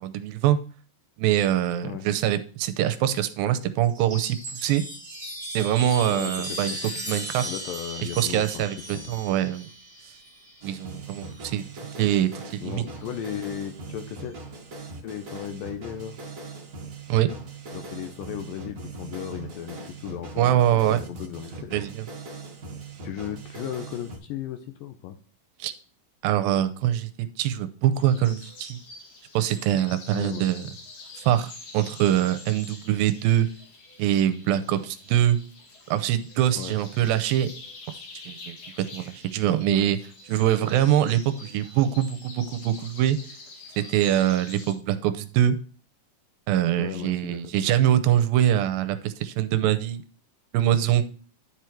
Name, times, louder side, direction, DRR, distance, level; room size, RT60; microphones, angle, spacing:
voice 1, 0.0-0.6 1.2-4.8 5.5-6.8 7.1-7.5 8.2-9.7 10.6-11.6 12.0-12.8 17.1-17.3 20.4-21.0 21.7-22.0 25.6-25.7 26.2-28.8 29.3-30.7 31.3-33.5 34.0-35.4 35.9-37.5 38.3-40.0 40.3-43.2 43.8-45.6 46.5-50.0 50.5-51.0, right 11 dB, 85° right, 11 dB, 2.4 m, -23 dB
Chime, 3.9-11.7 12.9-13.5, right 1 dB, 25° right, 3.4 m, -37 dB
voice 2, 6.1-6.8 7.5-8.6 8.9-9.2 12.6-14.4 15.0-16.2 17.7-21.8 23.0-25.2 30.1-30.7 36.6-36.8 39.7-39.9 46.8-47.5, left 10 dB, 80° left, 7 dB, 2.3 m, -36 dB
sound 1, 10.6-24.2, right 3 dB, 45° right, 1.1 m, -40 dB
sound 2, 27.9-44.7, left 3 dB, 60° left, 3.0 m, -46 dB
9.9 x 4.8 x 4.5 m, 0.40 s
omnidirectional pair, 4.3 m